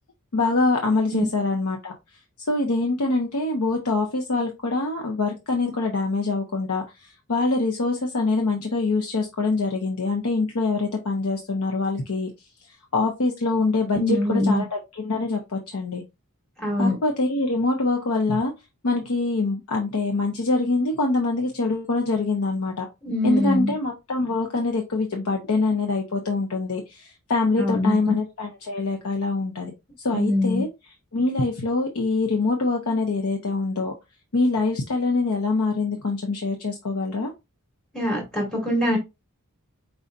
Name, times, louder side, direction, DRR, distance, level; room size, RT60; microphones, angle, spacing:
voice 1, 0.3-1.9 2.5-12.3 12.9-16.0 16.8-18.5 18.8-22.9 23.2-29.7 30.0-33.9 34.3-37.3, left 3 dB, 85° left, 2 dB, 0.8 m, -24 dB
voice 2, 14.0-14.6 16.6-16.9 23.0-23.7 27.6-28.0 30.1-30.6 37.9-39.0, left 1 dB, 5° left, -2 dB, 2.4 m, -23 dB
4.7 x 4.0 x 2.5 m, 0.24 s
head